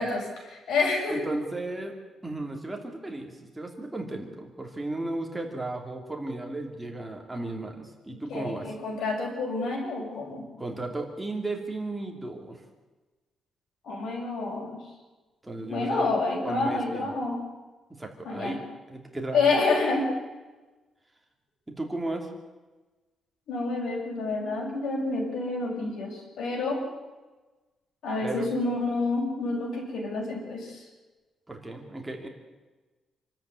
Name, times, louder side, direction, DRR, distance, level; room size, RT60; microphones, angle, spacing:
voice 1, 0.0-1.2 8.1-10.4 13.8-14.8 15.7-17.4 18.2-18.6 19.3-20.1 23.5-26.8 28.0-30.9, left 3 dB, 85° left, 1 dB, 7.3 m, -28 dB
voice 2, 1.1-2.0 2.2-8.7 10.6-12.6 15.4-16.1 16.4-17.1 18.0-18.6 18.9-19.4 21.7-22.3 28.2-28.5 31.5-32.3, right 2 dB, 10° right, 2 dB, 2.8 m, -35 dB
27.5 x 13.5 x 9.7 m, 1.2 s
wide cardioid pair, 170°, 0 cm